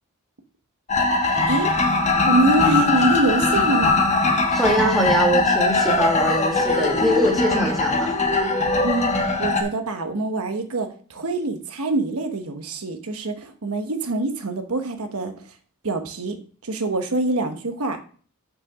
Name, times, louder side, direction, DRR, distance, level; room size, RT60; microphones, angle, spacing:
sound 1, 0.9-9.6, left 3 dB, 30° left, 1.0 m, -20 dB
voice 1, 2.3-4.0 8.8-15.3 15.8-16.4 16.6-18.0, right 2 dB, 80° right, 6 dB, 1.1 m, -24 dB
voice 2, 4.5-8.2, right 1 dB, ahead, 0 dB, 1.7 m, -22 dB
6.1 x 5.8 x 6.0 m, 0.43 s
head